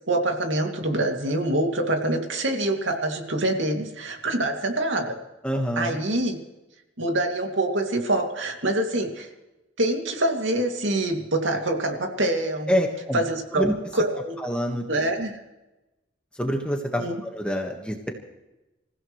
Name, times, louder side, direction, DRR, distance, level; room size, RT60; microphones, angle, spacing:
voice 1, 0.1-5.2 5.8-6.4 7.0-9.3 9.8-12.7 13.1-13.7 13.9-14.4 14.9-15.4 17.0-17.2, right 1 dB, 80° right, 3 dB, 2.5 m, -25 dB
voice 2, 5.4-6.0 12.7-13.2 13.6-13.7 14.4-14.9 16.4-18.1, equal, 5° left, 2 dB, 1.5 m, -26 dB
27.5 x 15.5 x 3.2 m, 1.0 s
head